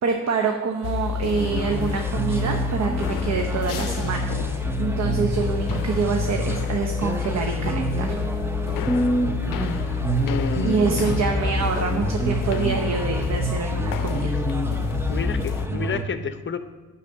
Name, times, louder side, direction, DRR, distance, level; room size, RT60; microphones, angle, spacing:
voice 1, 0.0-8.2 10.6-14.4, right 5 dB, 55° right, 3 dB, 0.9 m, -26 dB
sound 1, 0.8-15.7, left 7 dB, 85° left, 0.5 m, -28 dB
sound 2, 1.4-16.0, right 2 dB, 10° right, 0.7 m, -28 dB
sound 3, 5.4-11.4, equal, 25° right, 1.4 m, -41 dB
voice 2, 10.3-11.2 15.1-16.6, left 4 dB, 35° left, 10 dB, 0.7 m, -29 dB
9.8 x 4.1 x 7.5 m, 1.2 s
cardioid pair, 80°, 32 cm